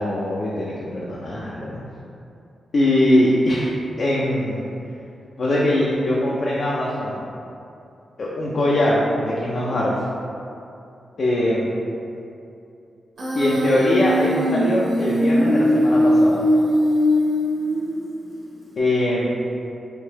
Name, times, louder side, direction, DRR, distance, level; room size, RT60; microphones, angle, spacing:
voice 1, 0.0-1.8 2.7-3.7 4.0-4.7 5.4-7.2 8.2-10.0 11.2-11.7 13.3-16.5 18.8-19.3, left 1 dB, 60° left, -6 dB, 0.5 m, -21 dB
Human voice, 13.2-18.2, equal, 60° right, 0.9 m, -20 dB
3.5 x 2.6 x 2.9 m, 2.6 s
cardioid pair, 65°, 0 cm